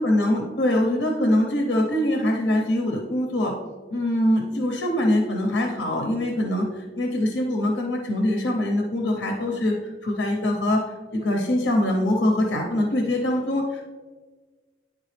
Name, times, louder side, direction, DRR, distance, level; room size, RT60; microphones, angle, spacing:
voice 1, 0.0-3.5 3.9-6.7 7.0-9.7 10.0-10.8 11.1-13.9, left 1 dB, 85° left, 1 dB, 0.8 m, -23 dB
10.0 x 3.6 x 3.3 m, 1.4 s
head